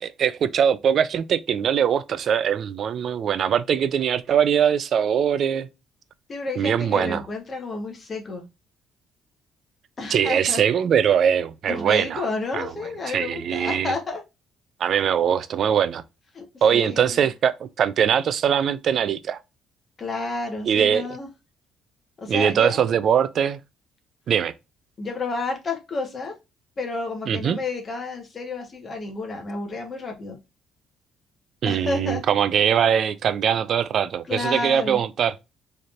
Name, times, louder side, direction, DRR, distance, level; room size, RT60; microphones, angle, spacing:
voice 1, 0.0-5.7 6.6-7.2 10.1-12.2 12.5-12.7 13.1-13.9 14.8-16.0 16.6-19.4 20.6-21.0 22.3-23.6 24.3-24.5 27.3-27.6 31.6-35.3, right 8 dB, 50° right, 0.4 m, -22 dB
voice 2, 6.3-8.4 10.0-10.6 11.7-14.2 16.3-17.3 20.0-21.3 22.2-22.9 25.0-26.3 26.8-30.4 31.7-32.2 34.3-35.0, left 3 dB, 30° left, 1.1 m, -30 dB
4.2 x 3.2 x 2.4 m
cardioid pair, 145°, 0 cm